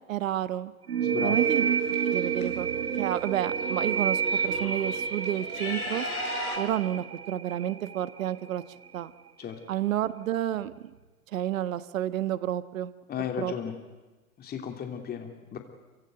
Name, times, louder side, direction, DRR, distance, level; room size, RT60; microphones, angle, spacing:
voice 1, 0.1-0.7 1.2-1.6 2.1-2.7 3.0-6.0 6.5-8.6 8.9-9.1 9.7-10.7 11.3-12.9 13.4-13.5, right 12 dB, 60° right, 14 dB, 1.4 m, -30 dB
sound 1, 0.9-8.3, right 7 dB, 80° right, 1.4 m, -29 dB
voice 2, 1.0-1.4 9.4-9.6 13.1-13.7 14.4-15.6, left 8 dB, 20° left, 4 dB, 3.0 m, -35 dB
sound 2, 1.4-2.4 3.6-3.7 4.0-6.6, left 1 dB, 70° left, 6.0 m, -37 dB
27.5 x 16.5 x 9.2 m, 1.2 s
hypercardioid pair, 110°, 44 cm